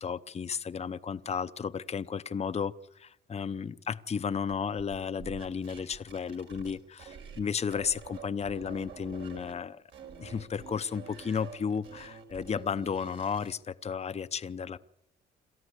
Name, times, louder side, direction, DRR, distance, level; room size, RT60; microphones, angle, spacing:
voice 1, 0.0-9.8 10.2-14.8, left 6 dB, 30° left, 12 dB, 0.8 m, -33 dB
sound 1, 4.5-7.4 7.7-9.5 9.9-13.6, right 6 dB, 75° right, 4.8 m, -48 dB
27.0 x 14.0 x 8.3 m, 0.80 s
cardioid pair, 90°, 20 cm